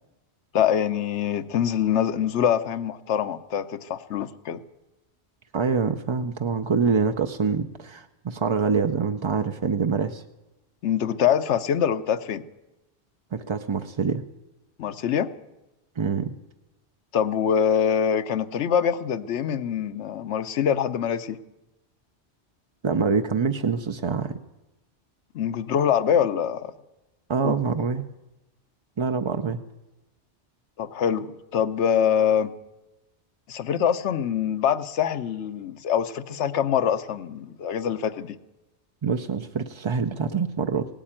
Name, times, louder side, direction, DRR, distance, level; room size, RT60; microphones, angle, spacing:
voice 1, 0.5-4.6 10.8-12.4 14.8-15.3 17.1-21.4 25.3-26.7 27.4-27.6 30.8-32.5 33.5-38.4, left 8 dB, 80° left, 13 dB, 1.0 m, -24 dB
voice 2, 5.5-10.2 13.3-14.2 16.0-16.3 22.8-24.4 27.3-28.0 29.0-29.6 39.0-40.9, right 5 dB, 45° right, 7 dB, 0.4 m, -25 dB
17.5 x 8.7 x 8.8 m, 1.0 s
omnidirectional pair, 1.2 m